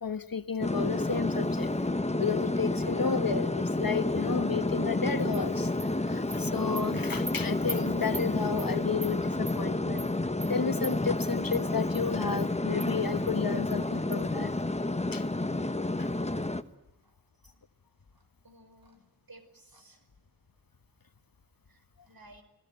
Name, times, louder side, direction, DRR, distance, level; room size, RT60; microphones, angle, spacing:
voice 1, 0.0-5.7 6.0-10.1 10.5-14.5 15.1-15.2 16.0-16.1, left 6 dB, 60° left, 1.3 m, -32 dB
sound 1, 0.6-16.6, left 2 dB, 15° left, 1.2 m, -30 dB
Animal, 5.3-5.4 5.8-5.9 6.3-6.4 6.8-6.9 7.3-7.4 7.7-7.8 8.1-8.3 8.6-8.7 9.0-9.1 9.5-9.6 10.0-10.1 10.4-10.5 10.8-10.9 11.2-11.6 11.9-12.0 12.4-12.5 12.8-12.9 13.3-13.4 13.7-13.8 14.1-14.2, right 2 dB, 45° right, 4.5 m, -39 dB
voice 2, 18.4-20.0 21.7-22.4, right 2 dB, 60° right, 5.1 m, -56 dB
29.5 x 18.0 x 9.2 m
wide cardioid pair, 75°, 39 cm